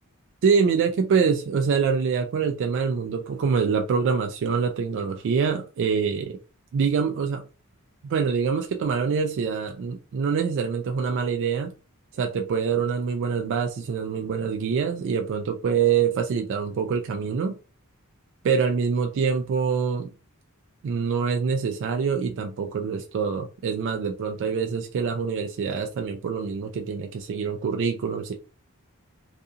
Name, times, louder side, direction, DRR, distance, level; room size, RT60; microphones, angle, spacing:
voice 1, 0.4-6.4 6.7-7.4 8.0-11.7 12.1-17.6 18.4-20.1 20.8-28.3, right 6 dB, 55° right, 0.3 m, -25 dB
2.7 x 2.4 x 2.4 m
head